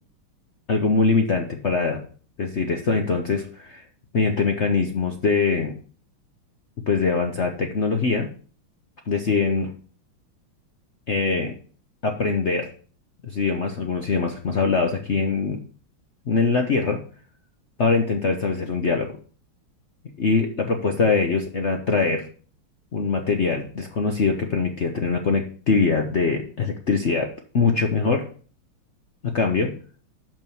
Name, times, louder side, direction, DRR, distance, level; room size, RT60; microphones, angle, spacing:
voice 1, 0.7-2.0 2.4-3.8 4.1-5.7 6.9-8.3 9.1-9.7 11.1-11.5 12.0-12.7 13.2-15.6 16.3-17.0 17.8-19.1 20.2-22.3 22.9-27.3 27.5-28.2 29.2-29.7, left 4 dB, 55° left, 3 dB, 0.8 m, -22 dB
6.1 x 6.0 x 6.9 m, 0.42 s
omnidirectional pair, 2.3 m